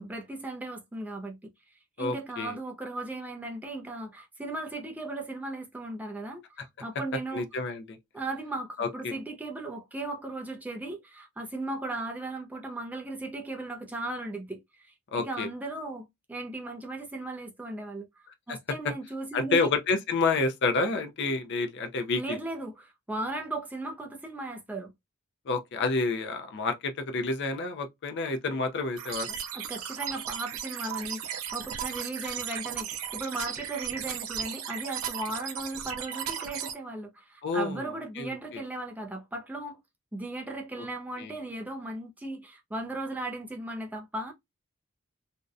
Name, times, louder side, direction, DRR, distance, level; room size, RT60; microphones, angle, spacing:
voice 1, 0.0-1.5 2.0-7.5 8.1-18.1 18.5-19.7 22.2-24.9 29.5-39.8 40.1-44.3, right 2 dB, 10° right, 0.4 m, -37 dB
voice 2, 2.0-2.6 7.3-8.0 8.8-9.1 15.1-15.5 18.5-18.6 19.3-22.4 25.5-29.4 37.4-38.6 40.8-40.9 41.2-41.3, left 3 dB, 55° left, 0.4 m, -29 dB
sound 1, 29.0-36.7, right 9 dB, 80° right, 0.4 m, -36 dB
2.6 x 2.1 x 2.4 m
head